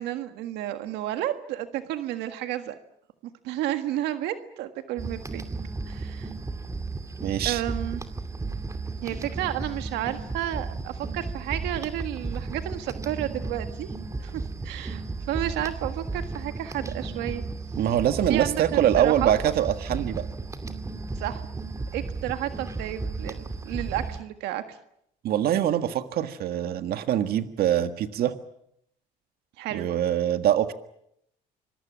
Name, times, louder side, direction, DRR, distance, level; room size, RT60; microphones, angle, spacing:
voice 1, 0.0-2.8 3.4-5.4 5.9-6.3 7.4-8.0 9.0-13.9 14.2-15.0 15.3-17.4 18.3-19.3 21.2-21.4 21.9-24.8 29.6-29.9, right 13 dB, 90° right, 8 dB, 1.6 m, -31 dB
sound 1, 5.0-24.2, right 3 dB, 20° right, 2.5 m, -34 dB
voice 2, 7.2-7.6 17.8-20.2 25.2-28.3 29.7-30.7, right 11 dB, 65° right, 9 dB, 1.7 m, -24 dB
26.0 x 22.5 x 7.5 m, 0.76 s
cardioid pair, 110°, 17 cm